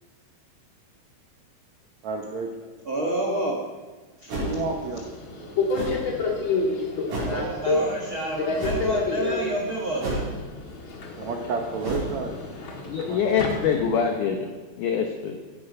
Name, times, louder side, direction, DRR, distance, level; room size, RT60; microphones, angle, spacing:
voice 1, 2.0-2.7 4.4-5.0 5.3-5.6 11.2-12.4 12.8-13.2 13.5-13.6, right 4 dB, 80° right, 3 dB, 1.6 m, -31 dB
voice 2, 2.8-3.7 4.2-4.3 7.2-10.2, right 1 dB, 65° right, -1 dB, 1.3 m, -29 dB
sound 1, 4.3-4.7 5.7-6.0 7.1-7.4 8.6-8.9 10.0-10.5 11.8-12.1, right 1 dB, 50° right, 5.7 m, -30 dB
Subway metro underground, 4.4-14.2, left 3 dB, 50° left, 1.5 m, -30 dB
voice 3, 12.9-14.5 14.8-15.4, left 7 dB, 80° left, 4 dB, 1.8 m, -24 dB
15.5 x 11.5 x 5.4 m, 1.3 s
omnidirectional pair, 4.9 m